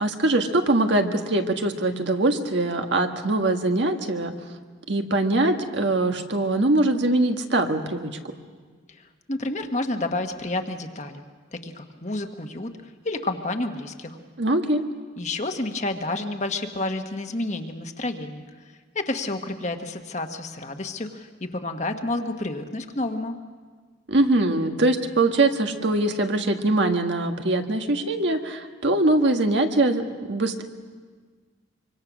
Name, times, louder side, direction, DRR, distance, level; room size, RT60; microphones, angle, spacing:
voice 1, 0.0-4.3 4.9-8.1 14.4-14.8 24.1-30.6, right 2 dB, 65° right, 5 dB, 1.6 m, -22 dB
voice 2, 8.9-11.2 11.5-14.2 15.2-18.4 18.9-23.4, left 2 dB, 35° left, 5 dB, 1.3 m, -30 dB
25.0 x 25.0 x 6.2 m, 1.5 s
head